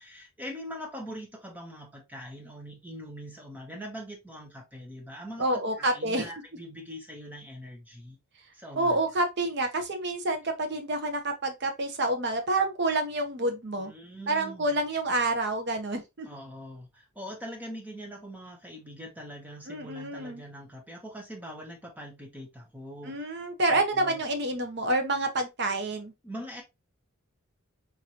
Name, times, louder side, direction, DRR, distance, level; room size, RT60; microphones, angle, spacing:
voice 1, 0.0-8.2 8.5-9.0 13.8-14.8 16.3-23.3 23.7-24.2 26.2-26.6, equal, 5° right, 0.9 m, -42 dB
voice 2, 5.4-6.3 8.8-13.9 14.3-16.3 19.7-20.4 23.0-26.1, right 2 dB, 50° right, 0.8 m, -28 dB
3.7 x 3.0 x 2.8 m
head